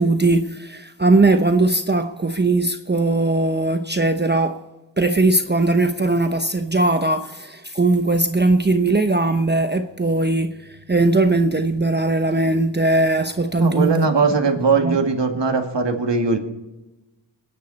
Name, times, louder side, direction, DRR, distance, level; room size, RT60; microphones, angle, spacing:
voice 1, 0.0-4.6 5.0-14.1 14.8-15.0, right 2 dB, 25° right, 0.9 m, -19 dB
voice 2, 13.6-16.4, right 4 dB, 70° right, 2.4 m, -20 dB
27.5 x 10.5 x 4.3 m
wide cardioid pair, 70°, 45 cm